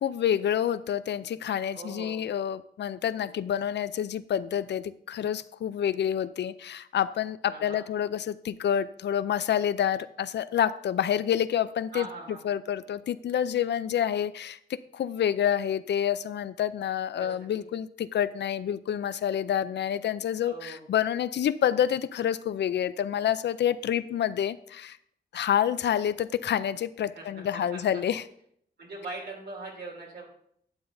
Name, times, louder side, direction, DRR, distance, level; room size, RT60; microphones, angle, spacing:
voice 1, 0.0-12.1 12.4-25.0 25.3-28.2, left 9 dB, 90° left, 15 dB, 0.4 m, -28 dB
voice 2, 1.7-2.2 7.5-7.8 11.9-12.4 17.2-17.6 20.4-20.9 27.1-28.0 28.8-30.2, right 3 dB, 70° right, -1 dB, 2.9 m, -41 dB
11.5 x 8.9 x 2.6 m, 0.68 s
wide cardioid pair, 110°, 18 cm